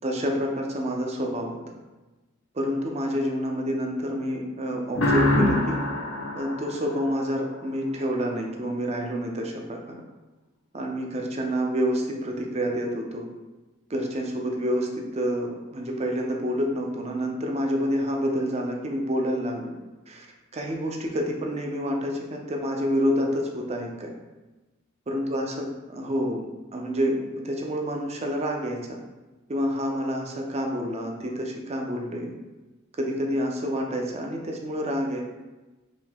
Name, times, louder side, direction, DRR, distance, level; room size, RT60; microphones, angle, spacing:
voice 1, 0.0-1.6 2.5-5.8 6.3-10.0 10.7-13.3 13.9-19.7 20.1-20.3 20.5-24.1 25.1-25.7 25.9-26.4 26.7-29.0 29.5-32.3 33.0-35.2, equal, 30° right, 1 dB, 0.5 m, -28 dB
sound 1, 5.0-7.6, left 1 dB, 70° left, 0.7 m, -25 dB
5.1 x 2.7 x 3.5 m, 1.1 s
head